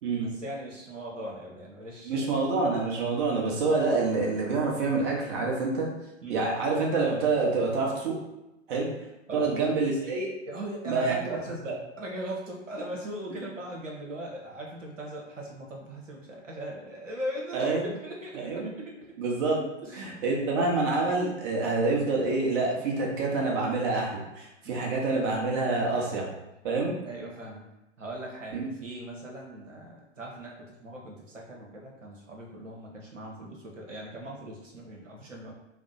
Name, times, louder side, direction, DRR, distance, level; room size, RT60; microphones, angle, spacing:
voice 1, 0.2-2.5 6.2-6.5 9.3-9.5 10.5-19.1 19.8-20.2 24.6-25.0 27.0-27.6 28.0-35.5, right 1 dB, 85° right, -1 dB, 1.0 m, -39 dB
voice 2, 2.0-5.9 6.3-8.2 8.7-8.9 9.3-10.3 10.8-11.1 11.6-11.7 17.5-17.9 18.3-18.7 19.2-19.6 20.0-26.3 26.6-26.9 28.5-28.7, right 3 dB, 45° right, -1 dB, 1.1 m, -27 dB
3.6 x 2.1 x 3.8 m, 0.95 s
figure-of-eight pair, 110°, 37 cm